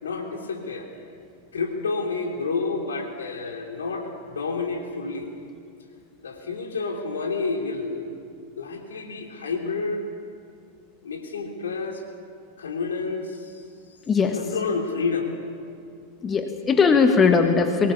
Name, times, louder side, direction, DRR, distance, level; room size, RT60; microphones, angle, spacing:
voice 1, 0.0-0.9 1.5-5.3 6.2-8.1 8.6-10.1 11.0-12.0 12.6-13.6 14.3-15.4, left 4 dB, 65° left, 2 dB, 3.3 m, -29 dB
voice 2, 14.1-14.4 16.2-17.9, left 5 dB, 20° left, 6 dB, 1.5 m, -19 dB
23.5 x 19.0 x 7.1 m, 2.5 s
figure-of-eight pair, 90°, 0 cm